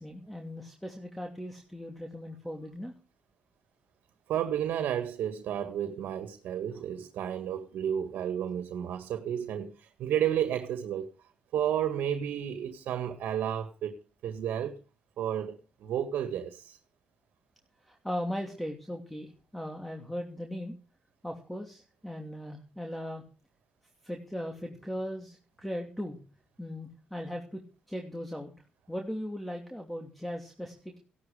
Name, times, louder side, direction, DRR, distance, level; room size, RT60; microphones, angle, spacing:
voice 1, 0.0-2.9 17.9-20.8 21.2-23.2 24.0-26.2 26.6-27.6 27.9-28.5 28.9-31.0, equal, 5° left, 2.8 m, -38 dB
voice 2, 4.3-11.1 11.5-14.0 14.2-14.8 15.2-16.8, right 10 dB, 80° right, 1.8 m, -32 dB
16.5 x 12.0 x 5.0 m
cardioid pair, 125°, 3 cm